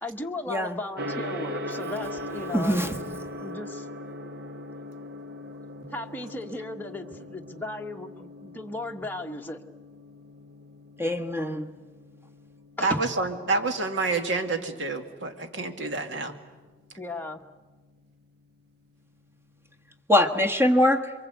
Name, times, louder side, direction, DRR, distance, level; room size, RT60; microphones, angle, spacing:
voice 1, 0.0-2.8 3.4-3.9 5.9-9.6 12.8-13.0 17.0-17.4, left 2 dB, 10° left, 2 dB, 1.2 m, -36 dB
Gong, 1.0-19.9, left 1 dB, 55° right, 1.3 m, -41 dB
voice 2, 2.5-3.0 11.0-11.7 20.1-21.1, left 1 dB, 15° right, 5 dB, 1.6 m, -23 dB
voice 3, 12.8-16.3, right 3 dB, 85° right, 5 dB, 2.3 m, -28 dB
28.0 x 23.5 x 8.2 m, 1.3 s
head